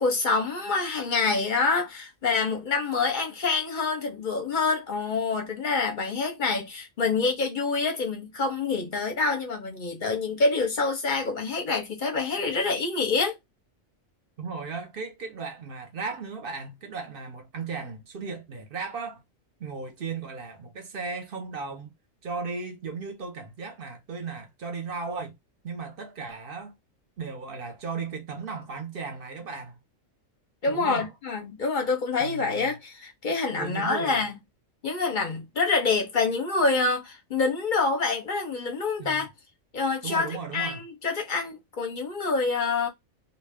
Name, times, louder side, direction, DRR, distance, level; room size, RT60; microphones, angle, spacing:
voice 1, 0.0-13.4 30.6-34.3 34.8-39.3 39.7-42.9, left 4 dB, 50° left, 0.7 m, -26 dB
voice 2, 14.4-19.2 19.6-21.9 22.2-25.4 25.6-26.7 27.2-29.8 30.7-31.1 32.2-32.7 33.6-34.3 39.0-39.3 40.0-40.8, right 4 dB, 50° right, 0.8 m, -36 dB
2.3 x 2.1 x 3.3 m
omnidirectional pair, 1.4 m